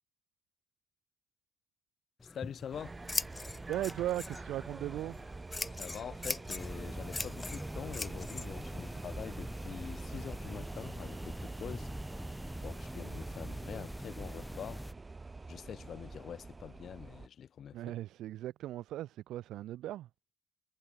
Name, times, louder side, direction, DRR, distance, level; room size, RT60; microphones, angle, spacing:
voice 1, 2.2-3.0 5.7-12.3 12.6-14.9 15.5-17.8, left 8 dB, 60° left, 2.6 m, -45 dB
Scissors, 2.2-10.3, left 3 dB, 20° left, 2.1 m, -42 dB
sound 1, 2.7-17.3, right 3 dB, 25° right, 2.6 m, -46 dB
voice 2, 3.7-5.2 17.7-20.1, right 14 dB, 85° right, 1.0 m, -37 dB
sound 2, 6.6-14.9, equal, ahead, 0.5 m, -44 dB
cardioid pair, 90°, 0 cm